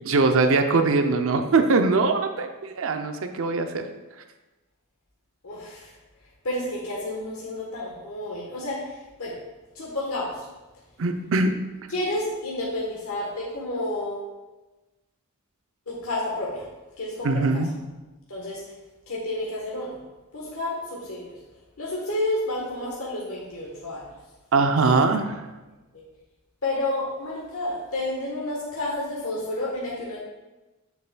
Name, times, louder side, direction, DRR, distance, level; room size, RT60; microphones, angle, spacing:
voice 1, 0.0-3.8 11.0-11.6 17.2-17.7 24.5-25.3, right 3 dB, 65° right, 6 dB, 0.6 m, -21 dB
voice 2, 5.4-5.9 6.4-9.4 9.7-10.4 11.9-14.3 15.9-16.6 17.0-17.6 18.3-18.6 19.1-20.0 20.3-21.3 21.8-24.1 24.8-24.9 25.9-26.0 26.6-30.2, left 1 dB, 90° left, -5 dB, 1.2 m, -30 dB
6.8 x 6.7 x 2.2 m, 1.1 s
head